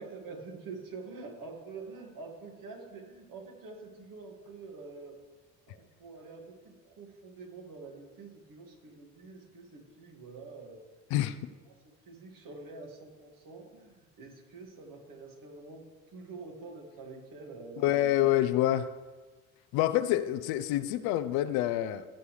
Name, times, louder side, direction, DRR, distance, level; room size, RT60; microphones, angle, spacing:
voice 1, 0.0-5.2 5.7-10.8 11.3-18.0, right 4 dB, 55° right, 2 dB, 2.1 m, -47 dB
voice 2, 17.8-18.9 19.7-22.1, left 13 dB, 65° left, 12 dB, 0.6 m, -27 dB
15.5 x 6.7 x 3.3 m, 1.3 s
hypercardioid pair, 55°, 40 cm